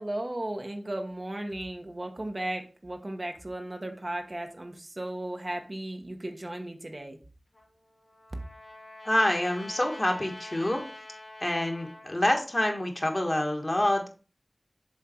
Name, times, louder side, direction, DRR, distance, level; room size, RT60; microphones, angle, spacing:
voice 1, 0.0-7.2, right 1 dB, 45° right, 4 dB, 1.1 m, -35 dB
Trumpet, 7.5-12.2, left 1 dB, 75° left, 2.5 m, -46 dB
voice 2, 9.0-10.8 11.4-14.1, left 1 dB, 40° left, 2 dB, 1.6 m, -27 dB
7.4 x 3.7 x 4.4 m, 0.35 s
wide cardioid pair, 50°, 0 cm